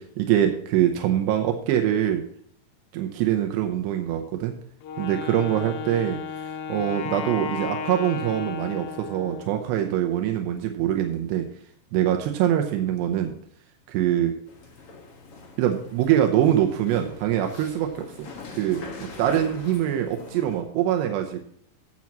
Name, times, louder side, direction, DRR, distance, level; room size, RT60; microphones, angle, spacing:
voice 1, 0.0-2.2 2.9-4.6 5.0-6.2 6.7-11.5 11.9-13.3 13.9-14.3 15.6-18.1 18.5-18.8 19.2-21.4, right 11 dB, 85° right, 4 dB, 3.0 m, -24 dB
Wind instrument woodwind instrument, 4.8-9.7, left 6 dB, 80° left, 2.9 m, -34 dB
sound 1, 14.5-20.6, left 3 dB, 50° left, 1.7 m, -42 dB
16.5 x 7.3 x 3.0 m, 0.63 s
omnidirectional pair, 4.9 m